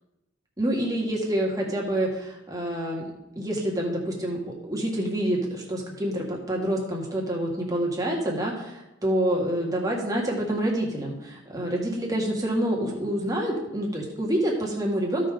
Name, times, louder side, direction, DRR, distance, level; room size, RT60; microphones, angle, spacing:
voice 1, 0.6-3.0 3.4-15.3, right 1 dB, 20° right, -2 dB, 1.8 m, -27 dB
15.0 x 5.2 x 3.8 m, 0.94 s
head